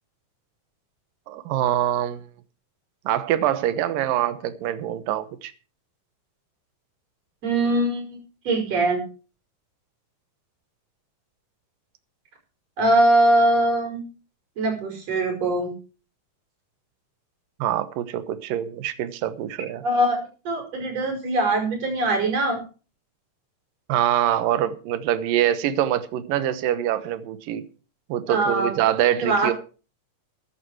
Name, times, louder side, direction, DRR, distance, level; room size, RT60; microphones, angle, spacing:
voice 1, 1.3-2.3 3.1-5.5 17.6-19.8 23.9-27.7 28.1-29.5, right 11 dB, 80° right, 2.8 m, -24 dB
voice 2, 7.4-9.0 12.8-14.1 14.6-15.7 19.8-20.2 20.4-22.6 28.3-28.8 29.2-29.5, right 1 dB, 50° right, 6.3 m, -22 dB
14.5 x 11.0 x 4.8 m
omnidirectional pair, 3.9 m